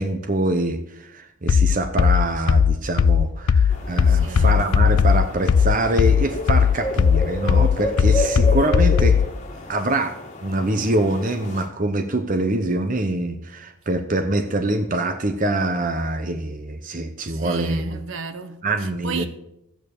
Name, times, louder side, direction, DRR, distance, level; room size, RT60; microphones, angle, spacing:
voice 1, 0.0-9.2 9.7-17.8 18.6-19.3, right 2 dB, 40° right, 0.9 m, -24 dB
sound 1, 1.5-9.3, left 6 dB, 85° left, 0.4 m, -17 dB
sound 2, 3.7-11.7, left 1 dB, 35° left, 1.9 m, -31 dB
voice 2, 4.0-4.7 9.6-9.7 17.3-19.3, right 4 dB, 60° right, 1.1 m, -33 dB
13.5 x 9.0 x 6.7 m
head